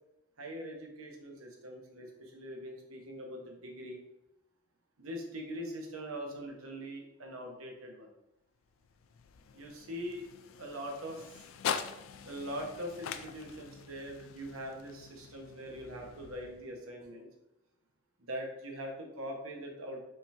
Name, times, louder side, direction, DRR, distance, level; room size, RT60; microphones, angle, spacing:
voice 1, 0.4-4.0 5.0-8.1 9.5-10.3 10.6-11.5 12.2-17.3 18.2-20.0, equal, 85° right, 1 dB, 1.0 m, -42 dB
sound 1, 8.6-16.9, left 7 dB, 75° left, 0.3 m, -43 dB
5.2 x 2.9 x 3.3 m, 0.87 s
head